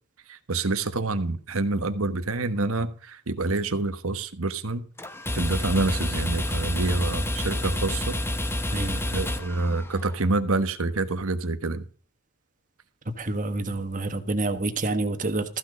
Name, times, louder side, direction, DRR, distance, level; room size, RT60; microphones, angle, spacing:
voice 1, 0.3-4.9 5.3-8.2 9.1-11.9, right 2 dB, 70° right, 10 dB, 1.3 m, -27 dB
sound 1, 5.0-10.2, left 1 dB, 10° left, 1.0 m, -29 dB
voice 2, 8.7-9.0 13.2-15.6, right 2 dB, 35° right, 8 dB, 1.5 m, -28 dB
14.5 x 6.5 x 5.2 m, 0.41 s
head